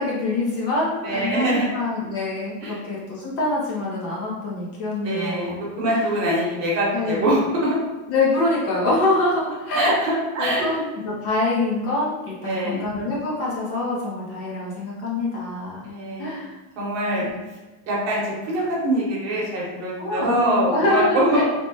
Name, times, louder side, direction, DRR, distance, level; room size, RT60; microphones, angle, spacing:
voice 1, 0.0-5.6 5.8-6.0 6.9-7.4 8.1-9.9 10.4-10.8 11.0-16.5 17.2-17.3 20.0-21.4, left 2 dB, 35° left, -4 dB, 0.6 m, -25 dB
voice 2, 1.0-1.7 2.6-2.7 5.0-5.5 5.8-7.8 9.7-10.6 12.4-12.8 15.8-16.3 16.8-17.3 17.9-21.4, right 1 dB, 35° right, -5 dB, 1.0 m, -23 dB
3.3 x 2.1 x 2.7 m, 1.1 s
supercardioid pair, 150°, 43 cm